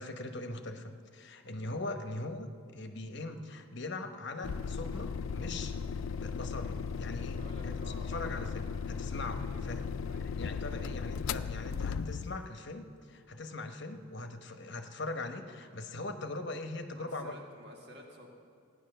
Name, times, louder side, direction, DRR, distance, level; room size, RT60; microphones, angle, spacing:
voice 1, 0.0-5.7 6.2-9.8 10.4-17.4, left 2 dB, 55° left, 6 dB, 1.0 m, -41 dB
sound 1, 4.4-12.5, left 5 dB, 75° left, 0.4 m, -36 dB
voice 2, 7.4-8.5 9.4-9.7 10.1-10.3 10.7-10.9 16.9-18.3, equal, 50° right, 0 dB, 1.8 m, -52 dB
16.0 x 9.8 x 6.7 m, 2.3 s
head